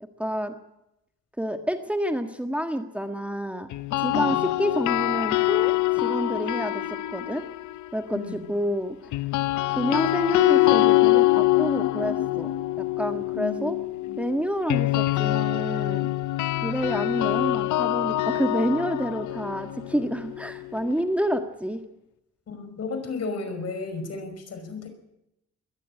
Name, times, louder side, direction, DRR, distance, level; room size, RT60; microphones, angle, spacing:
voice 1, 0.2-0.5 1.4-3.7 4.0-6.8 7.1-7.4 7.9-9.0 9.7-13.8 14.2-16.1 16.6-21.8, equal, 5° right, 6 dB, 1.6 m, -28 dB
sound 1, 3.7-7.9 9.1-21.0, left 17 dB, 75° left, 0.7 m, -24 dB
voice 2, 4.1-4.4 8.1-8.5 13.3-14.2 22.5-24.9, left 4 dB, 55° left, 8 dB, 5.5 m, -34 dB
21.5 x 14.5 x 8.7 m, 0.85 s
cardioid pair, 90°, 30 cm